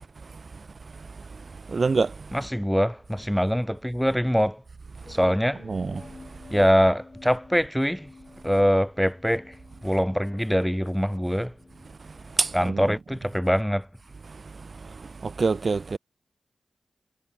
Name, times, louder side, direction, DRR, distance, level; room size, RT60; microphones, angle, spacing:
voice 1, 1.7-2.1 5.7-5.9 12.4-12.6 15.2-16.0, right 4 dB, 55° right, 0.4 m, -24 dB
voice 2, 2.3-4.6 5.1-5.6 6.5-8.1 8.4-9.6 9.8-11.5 12.5-13.9, equal, ahead, 0.8 m, -23 dB
sound 1, 5.0-12.7, left 3 dB, 40° left, 7.6 m, -50 dB
cardioid pair, 60°, 0 cm